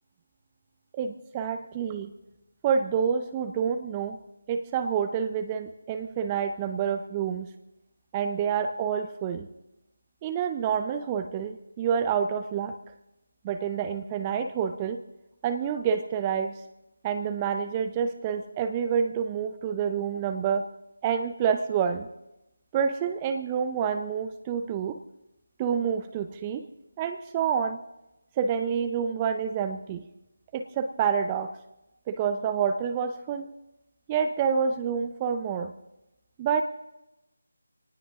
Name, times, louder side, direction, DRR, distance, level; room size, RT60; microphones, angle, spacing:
voice 1, 1.0-2.1 2.6-4.2 4.5-7.5 8.1-9.5 10.2-12.8 13.4-15.0 15.4-16.6 17.0-20.7 21.0-22.1 22.7-25.0 25.6-26.7 27.0-27.8 28.4-30.1 30.5-31.5 32.1-33.5 34.1-35.7 36.4-36.6, right 7 dB, 15° right, 8 dB, 0.6 m, -28 dB
27.5 x 18.5 x 2.6 m, 0.93 s
figure-of-eight pair, 160°, 0 cm